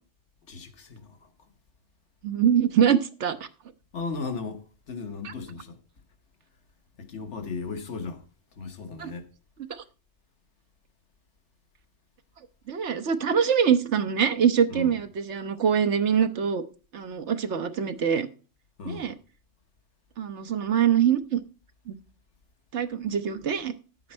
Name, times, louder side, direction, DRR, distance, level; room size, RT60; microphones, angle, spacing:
voice 1, 0.5-1.3 3.9-5.8 7.0-8.3 8.5-9.3 14.7-15.0 18.8-19.1, left 4 dB, 80° left, 1.5 m, -36 dB
voice 2, 2.2-3.5 5.2-5.3 9.0-9.1 9.7-9.8 12.7-16.6 16.9-18.3 18.8-19.1 20.2-21.4 21.9-22.0 22.7-23.7, right 8 dB, 80° right, 1.2 m, -24 dB
10.5 x 8.4 x 4.4 m
omnidirectional pair, 1.2 m